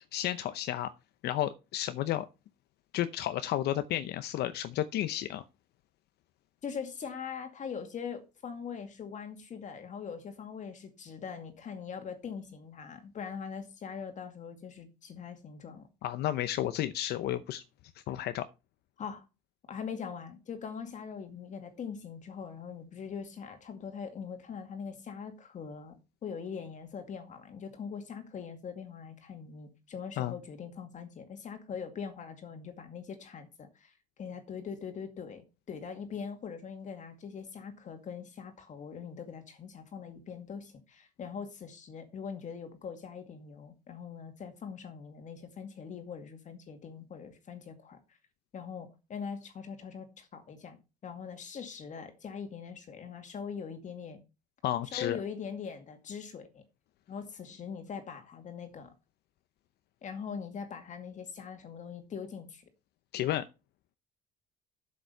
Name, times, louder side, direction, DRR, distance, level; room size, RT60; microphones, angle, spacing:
voice 1, 0.1-0.9 1.2-2.3 2.9-5.4 16.0-17.6 18.1-18.4 30.2-30.3 54.6-55.2 63.1-63.5, left 13 dB, 75° left, 0.7 m, -32 dB
voice 2, 6.6-15.9 19.0-19.2 19.7-48.0 48.5-54.2 54.8-56.6 57.1-58.9 60.0-62.6, left 6 dB, 45° left, 2.2 m, -42 dB
7.9 x 7.5 x 5.6 m
cardioid pair, 110°, 17 cm